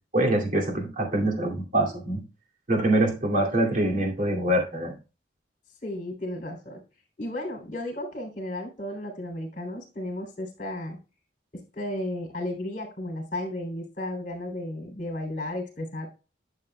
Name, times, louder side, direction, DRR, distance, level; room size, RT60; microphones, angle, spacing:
voice 1, 0.1-2.2 2.7-4.9, right 1 dB, 45° right, 1 dB, 2.5 m, -24 dB
voice 2, 5.8-6.8 7.2-11.0 11.7-16.1, left 1 dB, 45° left, 2 dB, 3.2 m, -34 dB
11.5 x 7.2 x 2.3 m, 0.31 s
head